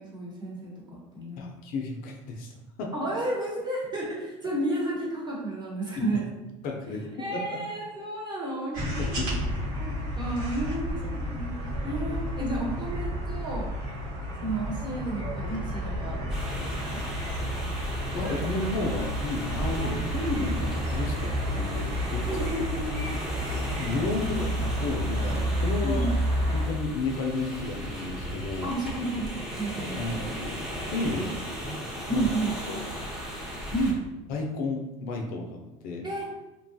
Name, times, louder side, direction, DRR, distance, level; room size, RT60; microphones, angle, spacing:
voice 1, 0.0-1.5 2.9-6.2 7.2-9.4 9.8-13.7 14.4-16.2 16.5-17.0 19.8-20.0 22.3-23.1 24.1-24.4 25.8-26.2 28.6-30.1 32.1-32.5 33.7-34.0 36.0-36.3, right 1 dB, 25° right, -4 dB, 1.1 m, -32 dB
voice 2, 1.4-2.5 2.8-2.9 6.6-7.0 7.3-7.6 9.0-9.5 10.2-10.3 11.0-11.4 18.1-22.2 23.8-26.1 26.5-28.7 30.0-30.5 30.9-31.3 32.1-32.4 32.7-32.8 34.3-35.6 35.8-36.1, left 3 dB, 60° left, 1 dB, 0.5 m, -32 dB
sound 1, 8.7-26.7, equal, 70° right, 1.3 m, -31 dB
sound 2, 16.3-33.9, equal, 5° right, 0.7 m, -37 dB
2.9 x 2.2 x 2.6 m, 0.99 s
supercardioid pair, 105°, 16 cm